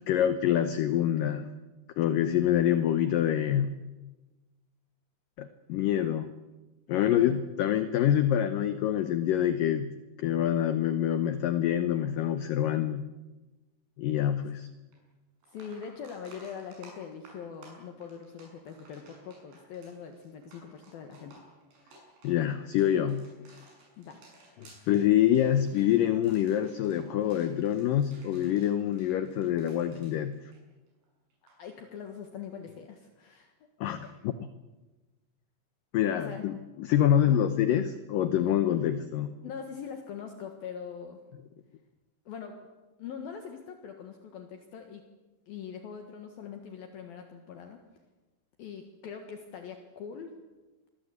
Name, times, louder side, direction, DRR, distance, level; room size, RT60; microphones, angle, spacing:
voice 1, 0.1-1.5 2.0-3.8 5.4-6.3 6.9-13.1 14.0-14.7 22.2-23.3 24.6-30.4 33.8-34.5 35.9-39.3, left 10 dB, 80° left, 11 dB, 2.0 m, -26 dB
voice 2, 6.9-7.3 15.5-21.4 24.0-24.2 31.6-33.5 36.1-36.4 37.2-37.4 39.4-41.2 42.3-42.7 43.0-45.0 45.5-47.8 48.6-50.4, left 7 dB, 65° left, 5 dB, 3.1 m, -42 dB
sound 1, 14.9-15.0 15.4-31.1 31.3-31.6 34.0-34.1, right 2 dB, 75° right, 9.3 m, -57 dB
26.0 x 22.0 x 8.2 m, 1.2 s
omnidirectional pair, 5.1 m